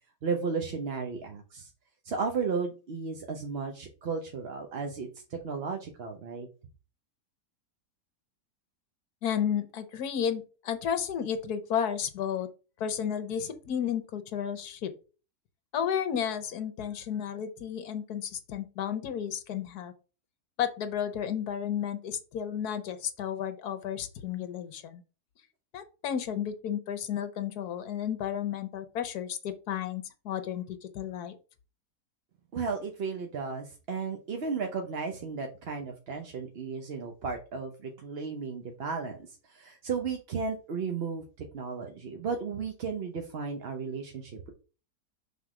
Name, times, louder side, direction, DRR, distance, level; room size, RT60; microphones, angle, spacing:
voice 1, 0.2-1.7 2.0-6.5 32.5-41.2 41.5-44.5, right 5 dB, 50° right, 3 dB, 0.8 m, -34 dB
voice 2, 9.2-12.5 12.8-14.9 15.7-19.9 20.6-25.0 25.7-31.4, left 8 dB, 70° left, 10 dB, 1.3 m, -32 dB
5.8 x 3.7 x 4.8 m, 0.34 s
omnidirectional pair, 1.8 m